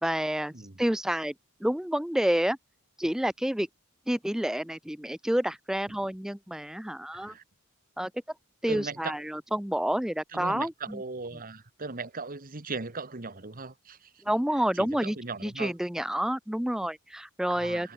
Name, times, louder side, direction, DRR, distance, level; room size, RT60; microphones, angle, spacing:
voice 1, 0.0-0.5 0.8-1.3 1.6-2.6 3.0-3.7 4.1-7.3 8.0-8.1 8.6-11.0 14.3-15.2 15.4-17.9, equal, ahead, 0.4 m, -29 dB
voice 2, 7.1-7.4 8.7-9.2 10.3-14.2 14.5-15.7 17.5-17.9, right 3 dB, 40° right, 1.7 m, -38 dB
head